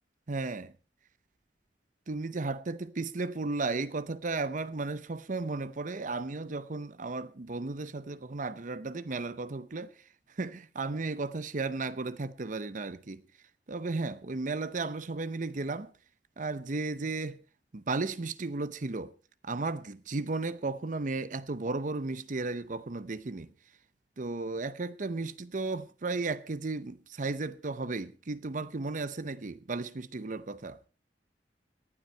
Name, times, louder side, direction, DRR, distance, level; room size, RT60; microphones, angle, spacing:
voice 1, 0.3-0.7 2.1-10.0 10.3-13.2 13.7-15.9 16.4-17.4 17.7-19.1 19.4-23.5 24.2-30.8, right 3 dB, 45° right, 0.7 m, -34 dB
18.5 x 12.0 x 4.4 m
head